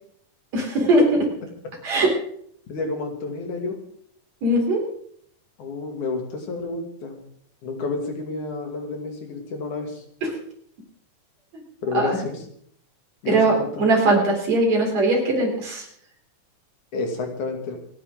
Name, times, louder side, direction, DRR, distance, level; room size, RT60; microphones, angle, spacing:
voice 1, 0.5-1.0 1.8-2.1 4.4-4.8 10.2-10.3 11.9-12.2 13.3-15.9, right 2 dB, 65° right, 0 dB, 5.1 m, -20 dB
voice 2, 2.7-3.8 5.6-7.2 7.6-10.0 11.8-12.4 13.2-13.9 16.9-17.8, left 3 dB, 80° left, 3 dB, 4.0 m, -30 dB
28.5 x 9.9 x 3.8 m, 0.64 s
omnidirectional pair, 3.4 m